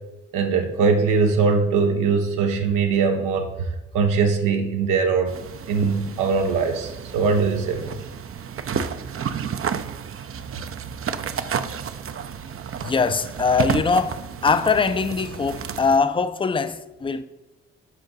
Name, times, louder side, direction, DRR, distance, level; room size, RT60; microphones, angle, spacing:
voice 1, 0.3-3.7 3.9-5.4 5.7-8.0, right 5 dB, 85° right, 0.9 m, -21 dB
sound 1, 5.3-16.0, right 7 dB, 45° right, 0.6 m, -31 dB
voice 2, 12.8-17.2, left 5 dB, 15° left, 0.5 m, -22 dB
10.5 x 4.4 x 3.9 m
hypercardioid pair, 45°, 31 cm